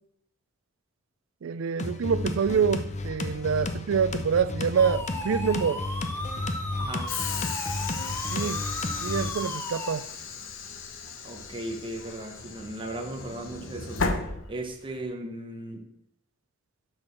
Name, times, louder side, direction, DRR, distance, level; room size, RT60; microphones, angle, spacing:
voice 1, 1.4-5.8 8.3-8.6 9.0-10.0, right 6 dB, 70° right, 0.4 m, -26 dB
sound 1, 1.8-9.3, left 2 dB, 35° left, 0.7 m, -33 dB
sound 2, 4.8-9.9, left 1 dB, 10° left, 0.9 m, -36 dB
voice 2, 6.8-7.1 11.2-14.0 14.5-15.9, right 1 dB, 25° right, 1.1 m, -36 dB
Train / Sliding door, 7.1-15.0, left 4 dB, 65° left, 1.0 m, -35 dB
6.3 x 6.2 x 6.2 m
head